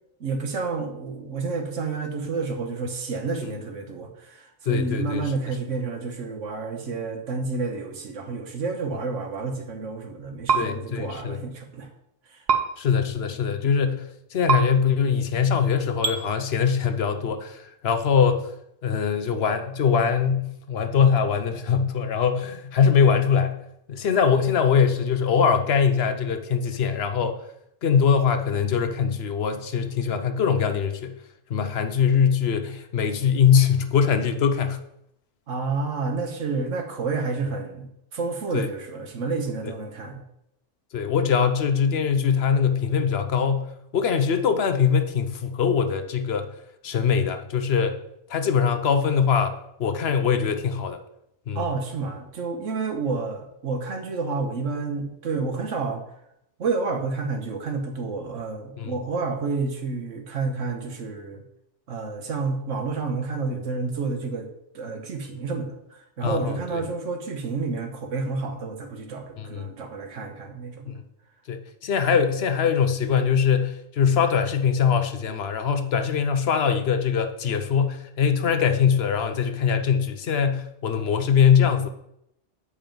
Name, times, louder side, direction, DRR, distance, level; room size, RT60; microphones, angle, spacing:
voice 1, 0.2-11.9 35.5-40.2 51.5-56.0 56.6-61.4 61.9-64.5 64.7-70.9, right 4 dB, 85° right, 4 dB, 1.4 m, -30 dB
voice 2, 4.7-5.3 10.5-11.4 12.8-18.5 18.8-23.6 23.9-27.4 27.8-31.1 31.5-34.8 38.5-38.7 39.6-39.7 40.9-46.5 46.8-48.0 48.3-51.0 51.5-51.6 58.8-58.9 66.2-66.8 69.4-69.7 70.9-71.0 71.5-81.9, left 7 dB, 60° left, 8 dB, 0.9 m, -22 dB
sound 1, 10.5-10.6 12.5-12.6 14.5-14.6 16.0-16.2, right 6 dB, 55° right, 1.0 m, -20 dB
7.4 x 4.9 x 5.2 m, 0.78 s
omnidirectional pair, 1.2 m